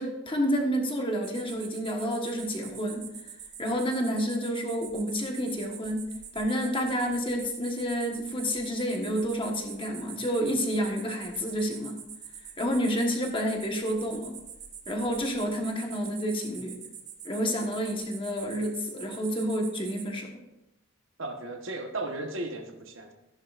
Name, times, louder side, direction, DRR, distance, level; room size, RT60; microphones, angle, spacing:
voice 1, 0.0-3.1 3.6-6.1 6.3-12.0 12.6-14.4 14.9-16.8 17.2-20.3, equal, 25° left, 2 dB, 1.3 m, -29 dB
sound 1, 1.2-20.1, right 8 dB, 35° right, 1.0 m, -45 dB
voice 2, 21.2-23.1, right 2 dB, 70° right, 4 dB, 1.2 m, -35 dB
14.5 x 10.5 x 2.5 m, 0.93 s
head